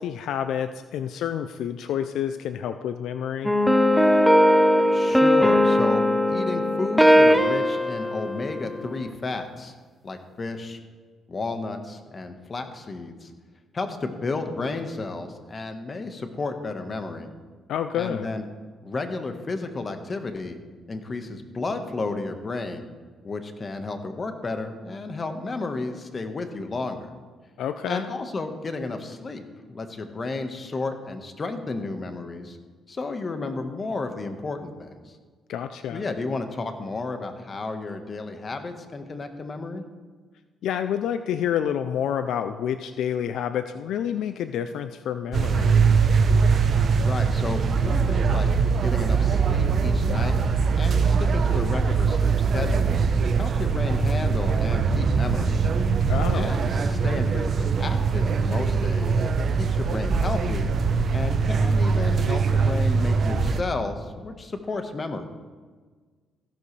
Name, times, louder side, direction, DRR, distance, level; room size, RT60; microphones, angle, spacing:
voice 1, 0.0-3.5 17.7-18.3 27.6-28.1 35.5-36.0 40.6-45.8 56.1-56.5, left 9 dB, 80° left, 10 dB, 0.5 m, -28 dB
sound 1, 3.4-9.1, equal, ahead, 0.8 m, -19 dB
voice 2, 4.9-9.8 10.0-10.8 11.3-13.3 13.7-17.3 17.9-18.4 18.8-20.6 20.9-22.9 23.2-27.1 27.8-29.4 29.7-32.6 32.9-35.2 35.9-39.8 47.0-48.5 48.8-50.4 50.8-53.0 53.4-55.7 56.3-59.3 59.5-60.7 61.1-65.2, left 3 dB, 35° left, 6 dB, 1.4 m, -32 dB
sound 2, 45.3-63.6, right 5 dB, 55° right, 0.9 m, -22 dB
15.5 x 12.0 x 3.3 m, 1.5 s
cardioid pair, 90°, 0 cm